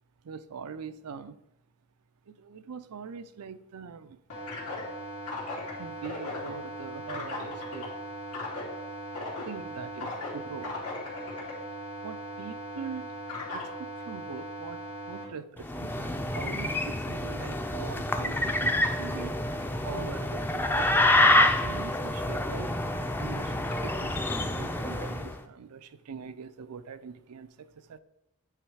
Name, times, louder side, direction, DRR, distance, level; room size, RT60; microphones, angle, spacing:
voice 1, 0.2-1.4 2.3-4.2 5.8-7.9 9.4-10.9 12.0-13.1 13.5-14.8 15.1-19.3 19.8-28.0, right 6 dB, 90° right, 13 dB, 0.5 m, -42 dB
sound 1, 4.3-15.2, left 1 dB, 90° left, 2.5 m, -38 dB
sound 2, 15.6-25.3, left 1 dB, 10° left, 0.4 m, -27 dB
9.2 x 3.1 x 4.7 m, 0.82 s
head